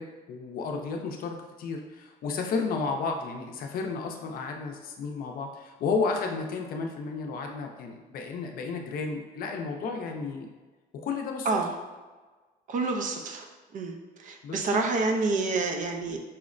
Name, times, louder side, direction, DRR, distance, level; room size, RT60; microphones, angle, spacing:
voice 1, 0.0-10.5 10.9-11.5 14.4-14.6, left 4 dB, 60° left, 3 dB, 0.5 m, -32 dB
voice 2, 12.7-13.5 13.7-16.2, right 3 dB, 50° right, 4 dB, 0.5 m, -28 dB
5.5 x 2.0 x 2.5 m, 1.3 s
cardioid pair, 110°, 17 cm